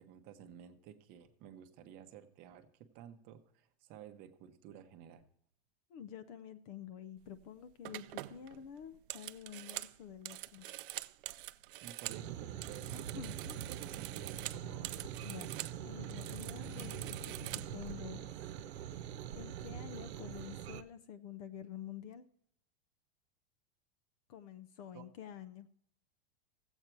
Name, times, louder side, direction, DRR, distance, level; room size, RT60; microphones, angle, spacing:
voice 1, 0.0-2.7 2.9-5.2 11.8-14.9 24.9-25.1, right 9 dB, 30° right, 7 dB, 0.8 m, -53 dB
voice 2, 5.9-10.7 13.1-13.6 15.2-18.3 19.3-22.3 24.3-25.7, left 9 dB, 35° left, 12 dB, 0.5 m, -49 dB
sound 1, 7.2-7.4 7.8-12.2 12.5-15.8 16.0-17.9, right 16 dB, 55° right, 0.5 m, -45 dB
sound 2, 12.1-20.8, right 10 dB, 80° right, 0.9 m, -44 dB
Accelerating revving vroom, 12.4-19.7, left 6 dB, 55° left, 0.8 m, -58 dB
15.5 x 8.1 x 4.5 m, 0.70 s
supercardioid pair, 175°, 32 cm